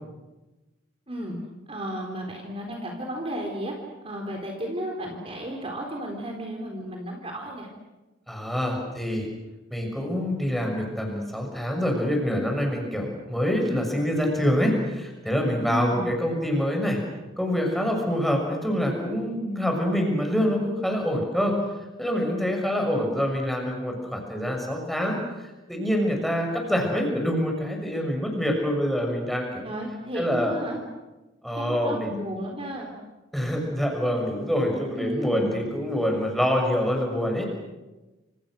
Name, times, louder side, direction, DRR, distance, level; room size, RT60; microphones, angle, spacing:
voice 1, 1.1-1.4 1.7-3.7 4.0-7.7 15.7-16.1 29.6-30.8 31.5-32.9 35.0-35.5, equal, 30° right, 1 dB, 3.9 m, -33 dB
voice 2, 8.3-9.3 9.7-17.0 17.4-21.6 22.0-29.6 30.1-30.5 31.4-32.1 33.3-37.5, equal, ahead, 1 dB, 6.4 m, -26 dB
29.0 x 27.0 x 6.4 m, 1.1 s
head